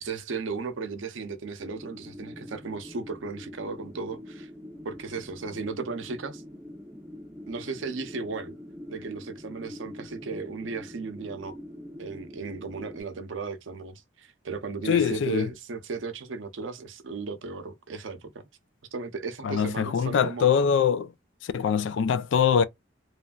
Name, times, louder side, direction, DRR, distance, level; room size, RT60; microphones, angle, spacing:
voice 1, 0.0-4.5 4.8-6.4 7.5-8.5 8.9-11.6 12.0-18.5 18.9-20.5, right 4 dB, 80° right, 0.6 m, -35 dB
sound 1, 1.6-13.0, left 1 dB, 10° right, 0.6 m, -44 dB
voice 2, 14.9-15.5 19.4-21.1 21.5-22.6, left 7 dB, 70° left, 0.3 m, -23 dB
3.1 x 2.4 x 2.2 m
head